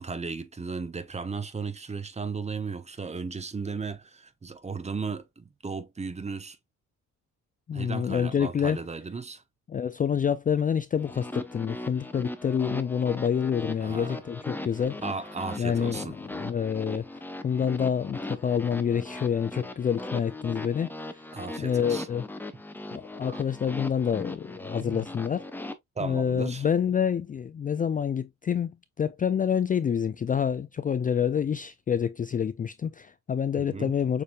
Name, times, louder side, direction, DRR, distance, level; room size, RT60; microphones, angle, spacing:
voice 1, 0.0-6.6 7.7-9.4 13.8-14.2 15.0-16.1 21.3-22.1 23.3-23.4 24.8-25.1 26.0-26.7 33.6-33.9, right 4 dB, 20° right, 0.9 m, -35 dB
voice 2, 7.7-8.8 9.7-15.0 15.6-17.0 17.4-21.2 21.6-22.2 22.9-25.5 26.0-34.2, left 7 dB, 30° left, 0.4 m, -27 dB
sound 1, 11.0-25.7, left 1 dB, 5° left, 0.8 m, -39 dB
6.6 x 3.4 x 2.3 m
cardioid pair, 90°, 30 cm